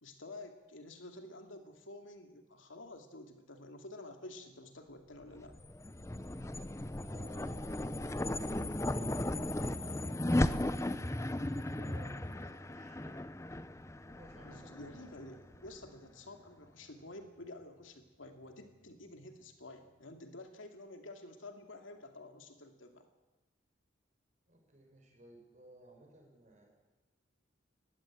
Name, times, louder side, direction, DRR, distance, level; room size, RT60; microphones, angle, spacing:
voice 1, 0.0-5.5 14.4-23.1, left 2 dB, 90° left, 5 dB, 2.6 m, -50 dB
sound 1, 5.3-15.9, left 1 dB, 15° left, 0.6 m, -36 dB
voice 2, 7.0-13.6 14.2-15.1 16.0-16.1 24.5-26.8, right 1 dB, 40° right, 1 dB, 6.0 m, -58 dB
20.5 x 15.5 x 8.9 m, 1.1 s
head